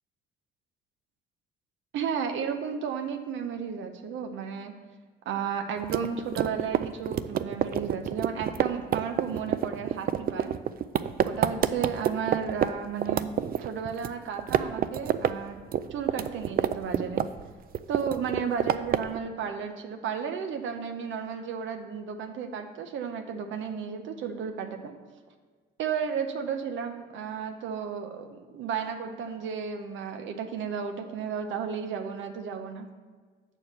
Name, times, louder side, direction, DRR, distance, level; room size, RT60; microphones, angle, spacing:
voice 1, 1.9-4.7 5.3-10.6 11.2-13.3 13.6-15.6 15.9-17.2 17.9-24.9 25.8-32.9, right 6 dB, 75° right, 6 dB, 0.7 m, -33 dB
sound 1, 5.8-12.7 13.0-14.1 14.4-15.3 15.6-17.5 17.7-19.2, right 10 dB, 50° right, 0.4 m, -27 dB
7.3 x 4.6 x 6.6 m, 1.5 s
cardioid pair, 90°, 20 cm